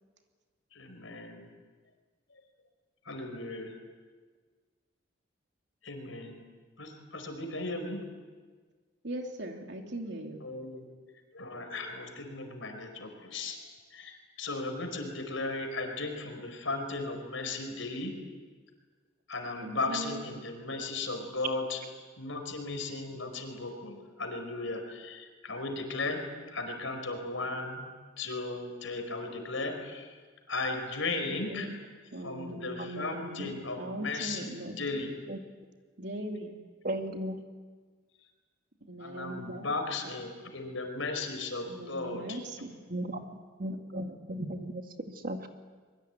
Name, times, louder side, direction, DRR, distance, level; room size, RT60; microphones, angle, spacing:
voice 1, 0.7-1.5 2.3-2.4 3.0-3.7 5.8-6.4 6.8-8.1 10.4-10.8 11.3-13.6 13.9-18.2 19.3-21.8 22.2-26.3 26.5-27.9 28.2-30.1 30.5-31.7 32.2-34.5 34.8-35.1 39.0-42.4, left 3 dB, 80° left, 5 dB, 4.8 m, -36 dB
voice 2, 9.0-10.4 19.6-20.2 31.2-31.7 32.1-35.0 36.0-36.6 38.8-39.7 41.7-42.8 43.7-44.2, right 1 dB, 60° right, 3 dB, 3.1 m, -40 dB
voice 3, 32.8-33.2 35.3-35.4 36.8-37.4 42.9-43.2 43.6-45.5, right 1 dB, 45° right, 5 dB, 1.9 m, -36 dB
23.5 x 23.0 x 9.1 m, 1.5 s
head